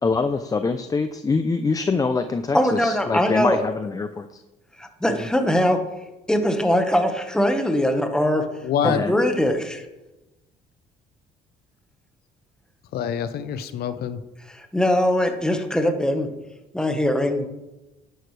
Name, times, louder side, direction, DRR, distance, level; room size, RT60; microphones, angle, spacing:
voice 1, 0.0-4.4 5.1-5.3 8.8-9.2, left 4 dB, 20° left, 9 dB, 0.6 m, -25 dB
voice 2, 2.5-3.6 4.8-5.8 6.3-8.4 8.8-9.8 14.5-16.3 16.7-17.5, equal, 5° left, 5 dB, 1.4 m, -21 dB
voice 3, 8.6-9.0 12.9-14.2, left 8 dB, 70° left, 11 dB, 0.8 m, -25 dB
11.0 x 11.0 x 3.4 m, 1.0 s
cardioid pair, 110°, 17 cm